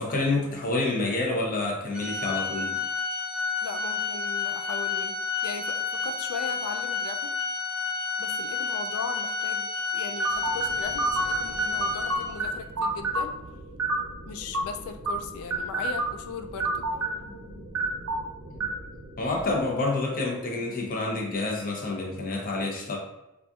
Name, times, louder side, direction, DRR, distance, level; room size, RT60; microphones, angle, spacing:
voice 1, 0.0-2.8 17.0-17.6 18.5-18.7 19.2-23.0, left 2 dB, 40° left, -1 dB, 0.7 m, -28 dB
Organ, 1.9-12.6, left 5 dB, 5° right, 0.8 m, -30 dB
voice 2, 3.6-7.3 8.2-13.3 14.3-16.9, left 5 dB, 75° left, 7 dB, 0.3 m, -38 dB
sound 1, 10.2-19.7, right 2 dB, 85° right, 0.6 m, -31 dB
4.0 x 2.5 x 2.4 m, 0.92 s
head